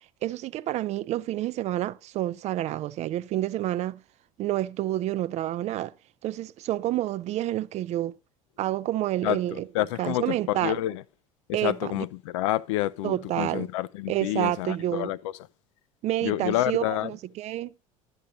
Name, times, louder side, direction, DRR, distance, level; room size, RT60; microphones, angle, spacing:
voice 1, 0.2-4.0 4.4-5.9 6.2-8.1 8.6-9.7 10.0-10.8 11.5-12.0 13.0-13.7 14.1-15.1 16.0-17.7, right 14 dB, 40° right, 0.4 m, -29 dB
voice 2, 9.2-11.0 11.6-15.2 16.2-17.1, left 15 dB, 60° left, 0.4 m, -28 dB
12.0 x 8.8 x 2.6 m
figure-of-eight pair, 65°, 18 cm